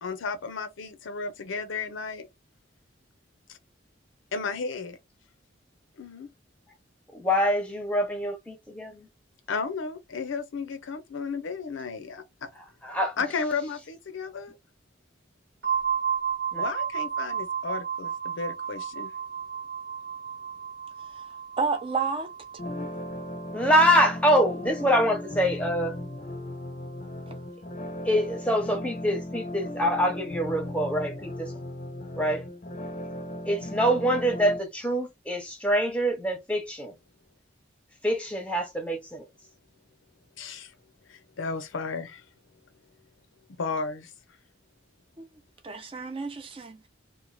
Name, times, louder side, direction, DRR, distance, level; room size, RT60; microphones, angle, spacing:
voice 1, 0.0-2.3 3.5-3.6 4.3-5.0 6.0-6.3 9.5-12.5 13.2-14.6 16.6-19.1 40.4-40.7 41.1-42.2 43.6-44.1, left 4 dB, 85° left, 0.6 m, -33 dB
voice 2, 7.1-9.1 12.8-13.1 16.5-16.6 23.5-25.9 28.0-31.5 32.2-32.4 33.4-36.9 38.0-39.2, equal, 5° left, 0.7 m, -25 dB
sound 1, 15.6-25.3, right 8 dB, 75° right, 1.0 m, -33 dB
voice 3, 21.6-22.3 45.2-45.3 45.6-46.9, right 4 dB, 30° right, 0.4 m, -30 dB
sound 2, 22.6-34.6, left 1 dB, 40° left, 0.5 m, -37 dB
3.0 x 2.2 x 2.6 m
head